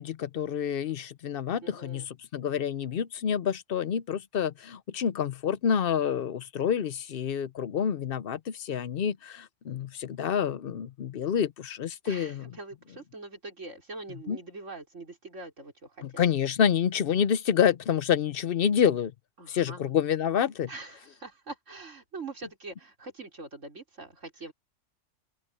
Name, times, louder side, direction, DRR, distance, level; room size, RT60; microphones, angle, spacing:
voice 1, 0.0-12.5 14.3-14.4 16.0-19.1 19.5-20.7, left 8 dB, 55° left, 0.8 m, -28 dB
voice 2, 1.6-2.1 12.0-16.2 19.4-19.9 20.7-24.5, right 3 dB, 75° right, 4.9 m, -43 dB
open air
omnidirectional pair, 1.3 m